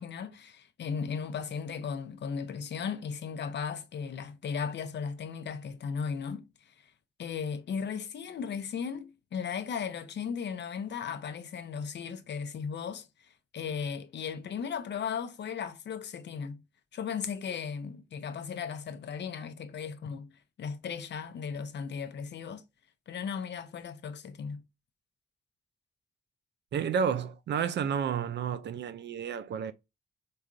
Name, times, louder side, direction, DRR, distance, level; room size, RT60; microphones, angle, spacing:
voice 1, 0.0-6.7 7.2-13.1 13.5-16.6 16.9-20.3 20.6-22.6 23.1-24.6, left 6 dB, 60° left, 0.5 m, -36 dB
voice 2, 26.7-29.7, right 7 dB, 60° right, 0.4 m, -31 dB
3.5 x 2.3 x 2.4 m
supercardioid pair, 40°, 20 cm